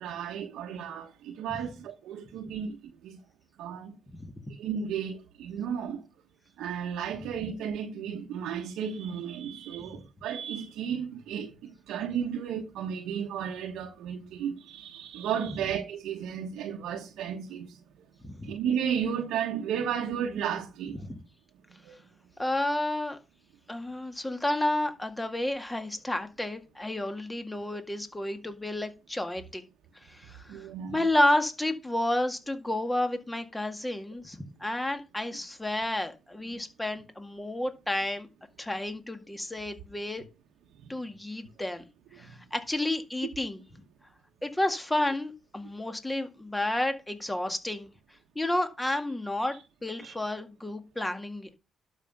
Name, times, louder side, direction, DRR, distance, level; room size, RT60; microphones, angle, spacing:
voice 1, 0.0-3.2 3.6-4.0 4.6-6.0 6.6-17.8 18.4-21.0 21.8-22.0 30.5-31.0 42.1-42.2 50.0-50.1, right 8 dB, 85° right, 1.1 m, -33 dB
voice 2, 22.4-23.2 23.7-29.6 30.1-30.6 30.9-38.3 38.6-40.2 40.9-41.8 42.2-43.6 44.4-47.9 48.4-51.5, left 1 dB, 10° left, 2.0 m, -31 dB
12.0 x 5.8 x 5.2 m
cardioid pair, 90°, 0 cm